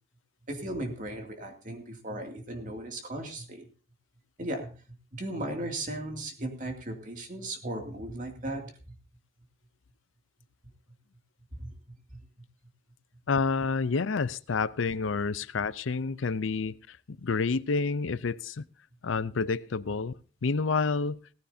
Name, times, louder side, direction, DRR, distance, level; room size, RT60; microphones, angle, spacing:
voice 1, 0.5-3.7 4.4-9.0 11.6-12.2, right 1 dB, 40° right, 2.5 m, -37 dB
voice 2, 13.3-18.6 19.0-20.1 20.4-21.2, left 4 dB, 85° left, 0.6 m, -29 dB
17.0 x 14.5 x 2.7 m
head